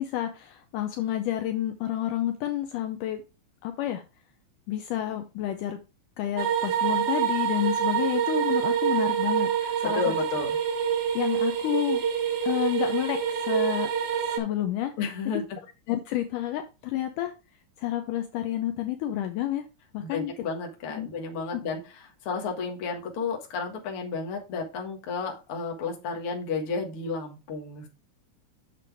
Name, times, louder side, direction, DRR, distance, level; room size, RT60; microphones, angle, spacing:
voice 1, 0.0-3.2 3.6-4.0 4.7-5.8 6.2-9.5 9.8-10.1 11.1-12.1 12.4-13.9 14.3-14.9 15.9-17.3 17.8-19.7 19.9-20.3 21.0-21.1 21.5-21.6, left 12 dB, 75° left, 7 dB, 2.1 m, -29 dB
sound 1, 6.4-14.4, right 8 dB, 90° right, 3.5 m, -26 dB
voice 2, 9.6-10.6 15.0-15.4 20.0-21.8 22.2-27.9, left 4 dB, 50° left, 1 dB, 2.1 m, -32 dB
7.6 x 6.8 x 3.4 m, 0.28 s
omnidirectional pair, 3.9 m